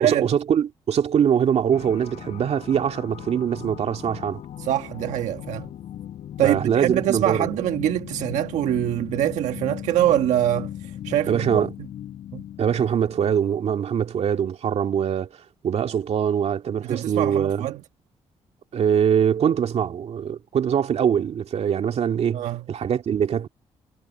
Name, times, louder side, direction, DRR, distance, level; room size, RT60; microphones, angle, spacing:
voice 1, 0.0-4.4 6.4-7.5 11.3-11.7 12.6-15.3 15.6-17.7 18.7-23.5, right 8 dB, 60° right, 2.1 m, -23 dB
sound 1, 1.7-13.5, left 11 dB, 75° left, 5.1 m, -37 dB
voice 2, 4.6-5.7 6.4-10.7 11.0-11.6 12.3-12.4 16.8-17.8 22.3-22.6, right 12 dB, 85° right, 1.4 m, -24 dB
cardioid pair, 70°, 12 cm